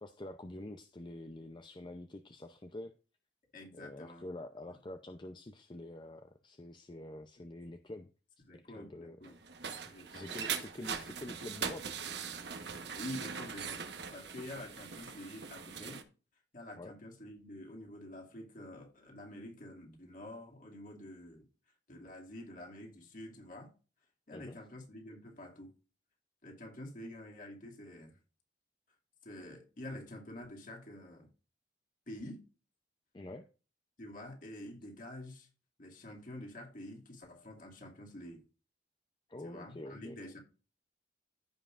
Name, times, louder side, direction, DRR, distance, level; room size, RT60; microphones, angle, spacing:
voice 1, 0.0-2.9 3.7-8.1 8.5-9.2 10.1-11.9 16.8-16.9 24.3-24.6 33.1-33.5 39.3-40.2, left 1 dB, 25° left, 0.5 m, -46 dB
voice 2, 3.5-4.3 7.4-7.5 8.4-9.4 9.8-10.3 12.8-16.0 16.5-21.5 21.9-23.7 24.3-25.7 26.4-28.2 29.2-31.3 32.1-32.4 34.0-35.5 35.8-38.4 39.4-40.4, left 1 dB, 50° left, 2.4 m, -48 dB
sound 1, 9.2-16.0, right 6 dB, 75° right, 1.2 m, -41 dB
14.5 x 5.5 x 2.5 m
head